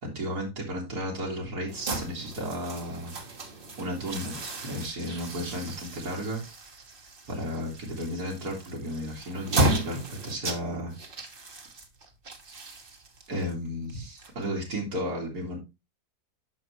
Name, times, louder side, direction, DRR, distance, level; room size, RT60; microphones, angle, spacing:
voice 1, 0.0-3.2 3.8-6.4 7.3-10.9 13.3-15.6, equal, 75° right, -2 dB, 2.7 m, -33 dB
sound 1, 1.7-14.8, right 1 dB, 40° right, 1.2 m, -34 dB
8.8 x 6.2 x 3.1 m, 0.24 s
omnidirectional pair, 1.7 m